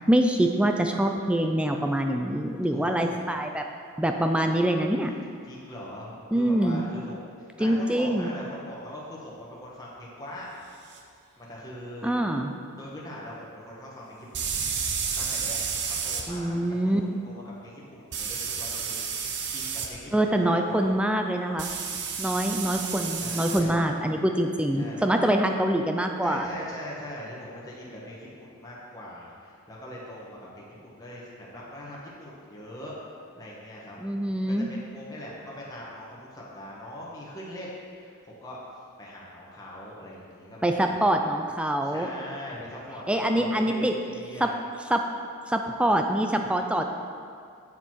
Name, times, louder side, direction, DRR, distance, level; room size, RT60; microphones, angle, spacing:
voice 1, 0.1-3.6 4.0-5.1 6.3-6.9 7.6-8.3 12.0-12.5 16.3-17.0 20.1-21.7 22.2-26.5 34.0-34.7 40.6-42.1 43.1-43.9 44.4-44.5 44.9-45.1 45.5-46.8, right 1 dB, 5° right, 4 dB, 0.3 m, -24 dB
voice 2, 2.7-3.3 5.5-7.2 7.6-10.5 11.4-12.1 12.8-14.4 15.1-15.6 16.0-16.6 16.8-20.9 23.2-23.9 24.3-24.4 24.8-25.3 26.2-38.6 39.0-40.9 41.8-44.5, equal, 15° left, -6 dB, 1.3 m, -41 dB
sound 1, 10.9-11.0 14.3-16.2 18.1-19.9 21.6-23.6, right 6 dB, 50° right, 0.8 m, -31 dB
7.5 x 7.0 x 4.6 m, 2.3 s
head